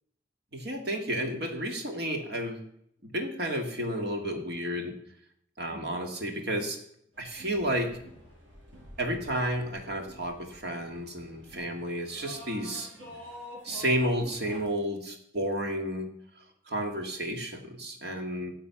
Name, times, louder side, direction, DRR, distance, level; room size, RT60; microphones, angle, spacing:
voice 1, 0.5-2.6 3.0-5.0 5.6-6.8 7.2-7.9 9.0-12.9 13.6-16.1 16.7-18.5, equal, 55° right, 3 dB, 2.1 m, -31 dB
sound 1, 7.1-14.6, equal, 85° right, 5.9 m, -48 dB
13.0 x 7.6 x 5.9 m, 0.72 s
head